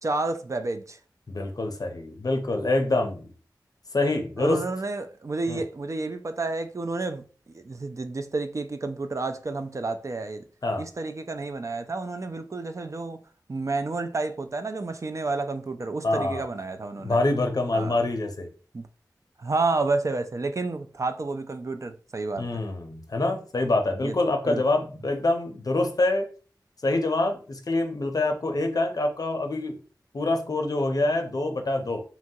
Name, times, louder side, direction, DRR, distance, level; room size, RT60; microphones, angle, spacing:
voice 1, 0.0-1.0 4.4-7.2 7.5-10.4 10.8-13.2 13.5-17.2 17.7-18.0 18.7-18.9 19.4-22.6 24.0-24.2 24.5-24.6, right 3 dB, 45° right, 0.3 m, -30 dB
voice 2, 1.3-3.3 3.9-4.6 5.5-5.6 10.6-10.9 16.0-16.4 17.0-18.5 22.4-26.3 26.8-29.8 30.1-32.0, left 2 dB, 55° left, 0.5 m, -26 dB
2.9 x 2.3 x 2.7 m
wide cardioid pair, 45°, 7 cm